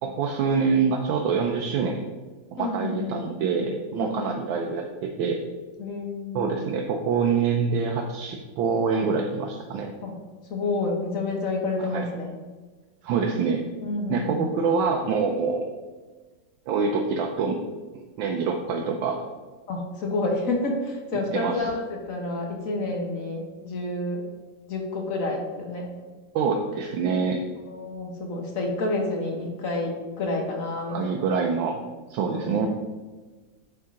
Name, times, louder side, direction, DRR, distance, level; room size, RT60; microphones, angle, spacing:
voice 1, 0.0-2.0 2.5-5.4 6.3-9.9 11.9-12.0 13.0-13.6 14.1-15.7 16.7-17.6 17.9-19.2 21.3-21.7 26.3-27.4 30.9-31.8 32.1-32.7, right 5 dB, 85° right, 1 dB, 1.4 m, -25 dB
voice 2, 2.6-3.2 4.0-4.3 5.8-6.6 10.0-10.1 10.5-12.3 13.8-14.4 19.7-24.2 24.7-25.9 27.6-31.2 32.3-32.7, left 2 dB, 50° left, 1 dB, 1.2 m, -29 dB
9.3 x 3.6 x 3.7 m, 1.3 s
omnidirectional pair, 2.1 m